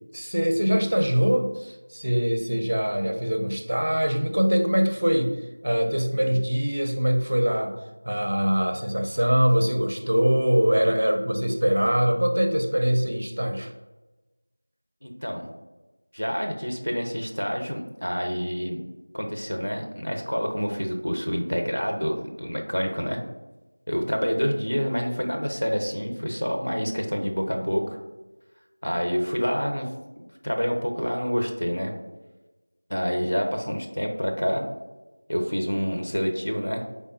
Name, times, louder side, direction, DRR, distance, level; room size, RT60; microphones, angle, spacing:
voice 1, 0.1-5.3 5.6-7.7 8.0-13.7, equal, 45° right, 5 dB, 0.5 m, -23 dB
voice 2, 15.0-15.5 16.1-18.8 19.1-23.2 23.9-28.0 28.8-29.9 30.2-31.9 32.9-34.6 35.3-36.8, equal, 80° left, 2 dB, 0.8 m, -27 dB
4.1 x 3.5 x 2.7 m, 1.1 s
figure-of-eight pair, 175°, 0 cm